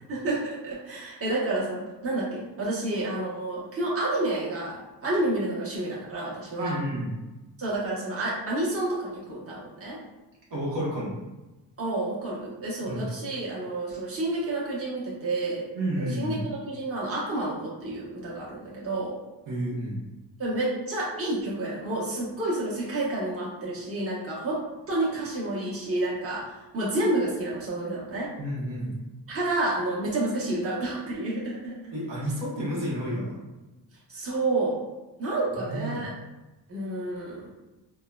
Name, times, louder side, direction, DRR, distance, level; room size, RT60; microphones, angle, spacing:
voice 1, 0.1-6.8 7.6-10.0 11.8-15.6 16.0-19.2 20.4-28.3 29.3-31.9 34.1-34.8 35.2-36.1 36.7-37.5, right 2 dB, 30° right, -6 dB, 1.0 m, -29 dB
voice 2, 6.6-7.1 10.5-11.2 12.9-13.1 15.7-16.5 19.5-20.0 28.4-28.9 31.9-33.4 35.5-36.1, equal, 75° right, -5 dB, 1.1 m, -31 dB
3.5 x 2.2 x 2.2 m, 1.1 s
cardioid pair, 90°, 43 cm